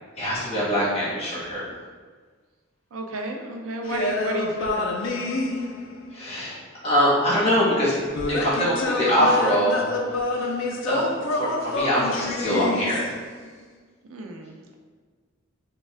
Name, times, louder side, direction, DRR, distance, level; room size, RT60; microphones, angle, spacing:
voice 1, 0.2-1.7 6.1-6.5 6.8-8.0 8.3-9.9 10.3-10.6 10.8-11.0 11.3-13.1, equal, 30° left, -8 dB, 1.1 m, -23 dB
voice 2, 2.9-4.9 14.1-14.7, right 2 dB, 75° right, 3 dB, 0.4 m, -33 dB
sound 1, 3.8-6.2 8.1-13.4, left 2 dB, 65° left, 0.4 m, -27 dB
3.4 x 2.2 x 3.2 m, 1.5 s
head